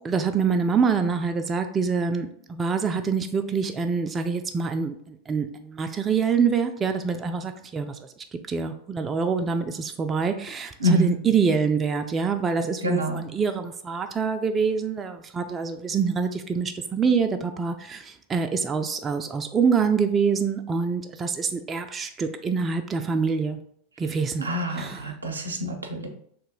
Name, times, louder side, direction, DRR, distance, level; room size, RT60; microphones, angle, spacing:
voice 1, 0.0-8.0 8.5-23.6 24.0-24.5 24.8-25.0, right 5 dB, 25° right, 6 dB, 0.3 m, -25 dB
voice 2, 10.8-11.2 12.8-13.3 24.4-26.1, equal, 90° right, 2 dB, 0.6 m, -26 dB
3.0 x 2.6 x 3.7 m, 0.67 s
figure-of-eight pair, 90°, 0 cm